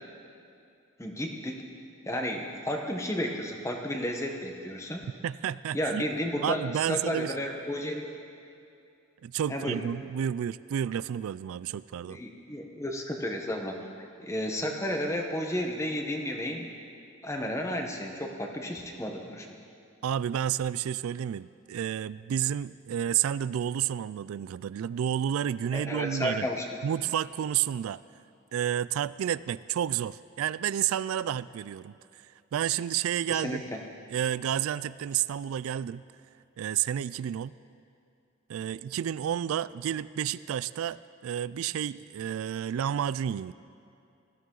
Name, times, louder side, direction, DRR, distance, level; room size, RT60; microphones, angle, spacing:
voice 1, 1.0-1.6 2.1-5.0 5.7-6.6 6.9-8.1 9.5-9.8 12.1-13.8 14.2-16.7 17.2-19.5 25.7-26.8 33.3-33.8, equal, 15° left, 2 dB, 1.1 m, -32 dB
voice 2, 5.2-6.0 6.4-7.3 9.2-12.2 20.0-26.5 26.8-28.0 28.5-32.2 32.5-33.6 34.1-36.0 36.6-37.5 38.5-43.5, right 9 dB, 85° right, 18 dB, 0.3 m, -30 dB
19.5 x 14.0 x 3.9 m, 2.6 s
head